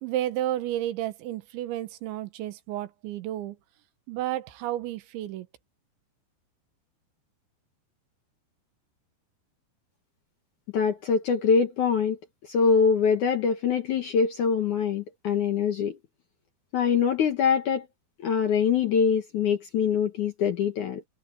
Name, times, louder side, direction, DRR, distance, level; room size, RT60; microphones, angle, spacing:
voice 1, 0.0-3.6 4.1-5.5, right 13 dB, 85° right, 3.6 m, -31 dB
voice 2, 10.7-16.0 16.7-17.9 18.2-21.0, left 6 dB, 65° left, 2.0 m, -24 dB
omnidirectional pair, 5.2 m